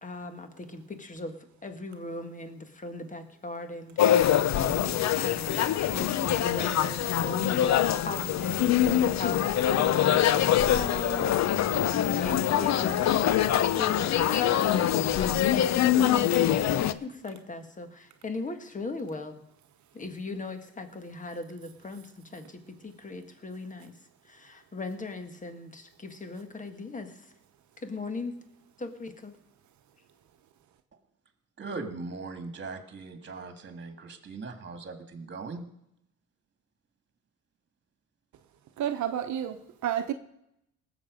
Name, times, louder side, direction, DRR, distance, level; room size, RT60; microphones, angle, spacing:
voice 1, 0.0-7.8 8.0-19.4 19.9-23.9 24.3-27.3 27.8-28.3 28.8-29.3, left 3 dB, 25° left, 7 dB, 1.7 m, -38 dB
sound 1, 4.0-16.9, left 11 dB, 60° left, 0.7 m, -24 dB
voice 2, 31.6-35.6, right 3 dB, 40° right, 7 dB, 2.0 m, -39 dB
voice 3, 38.8-40.1, right 10 dB, 70° right, 9 dB, 0.9 m, -30 dB
18.5 x 7.4 x 5.1 m, 0.80 s
cardioid pair, 90°, 30 cm